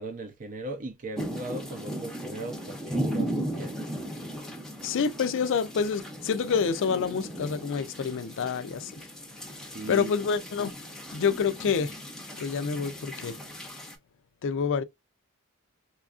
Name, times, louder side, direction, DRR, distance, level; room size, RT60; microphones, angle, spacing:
voice 1, 0.0-3.8 9.7-10.1, right 2 dB, 40° right, 0.5 m, -38 dB
sound 1, 1.2-13.9, right 1 dB, ahead, 0.7 m, -37 dB
voice 2, 4.8-8.9 9.9-10.7 11.1-11.9 12.4-13.4 14.4-14.8, left 6 dB, 60° left, 0.4 m, -27 dB
4.3 x 2.3 x 2.4 m
head